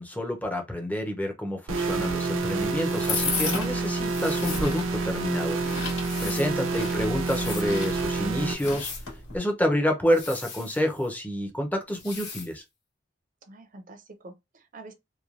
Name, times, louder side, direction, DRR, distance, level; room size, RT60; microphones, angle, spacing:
voice 1, 0.0-5.6 6.2-8.9 9.3-12.6, equal, 10° left, 0.6 m, -28 dB
sound 1, 1.7-8.5, right 3 dB, 90° right, 0.6 m, -28 dB
sound 2, 2.0-9.4, left 3 dB, 75° left, 1.4 m, -35 dB
sound 3, 2.8-3.4 4.1-4.7 5.7-6.5 7.1-7.7 8.5-9.1 10.1-11.1 11.9-12.5, left 5 dB, 60° left, 1.3 m, -40 dB
voice 2, 6.2-6.7 13.4-14.9, right 2 dB, 40° right, 0.5 m, -47 dB
3.0 x 2.1 x 2.4 m
head